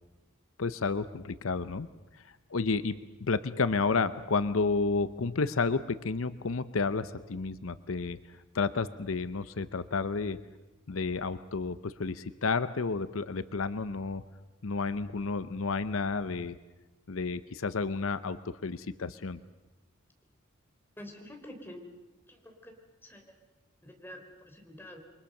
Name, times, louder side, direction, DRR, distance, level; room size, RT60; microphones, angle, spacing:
voice 1, 0.6-1.9 2.5-8.2 8.5-10.4 10.9-14.2 14.6-16.6 17.1-19.4, left 4 dB, 75° left, 13 dB, 0.7 m, -31 dB
voice 2, 21.0-21.8 22.3-22.7 23.0-23.4 23.8-25.0, left 1 dB, 10° left, 2 dB, 3.8 m, -47 dB
28.5 x 23.5 x 6.6 m, 1.1 s
head